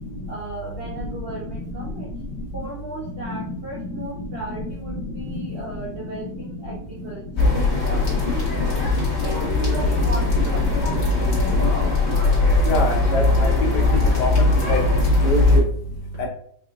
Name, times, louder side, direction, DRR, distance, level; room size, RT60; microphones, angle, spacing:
voice 1, 0.3-2.1 2.5-8.5 8.9-11.6 12.5-12.7, right 2 dB, 55° right, -5 dB, 0.6 m, -36 dB
sound 1, 7.4-15.6, left 2 dB, 35° left, 1.6 m, -19 dB
voice 2, 12.7-13.8 14.2-14.8 15.2-15.4 16.2-16.3, left 2 dB, 65° left, 1 dB, 1.2 m, -24 dB
4.7 x 2.8 x 2.4 m, 0.62 s
omnidirectional pair, 2.1 m